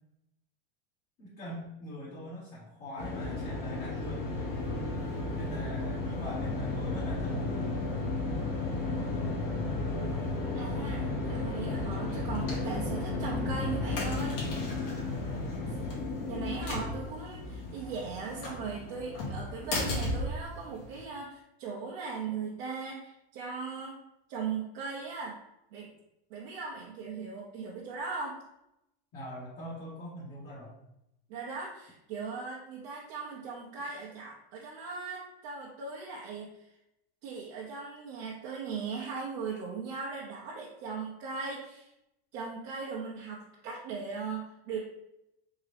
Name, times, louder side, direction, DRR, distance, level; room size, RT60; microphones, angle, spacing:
voice 1, 1.2-4.3 5.3-7.8 29.1-30.8, equal, 30° left, -8 dB, 1.3 m, -42 dB
sound 1, 3.0-21.0, left 2 dB, 65° left, 1.6 m, -33 dB
voice 2, 10.5-14.4 16.3-24.0 24.3-25.4 25.7-25.9 26.3-28.4 31.3-36.7 37.2-41.9 42.3-44.8, right 5 dB, 45° right, -5 dB, 0.9 m, -38 dB
3.8 x 3.7 x 3.4 m, 0.85 s
supercardioid pair, 160°, 30 cm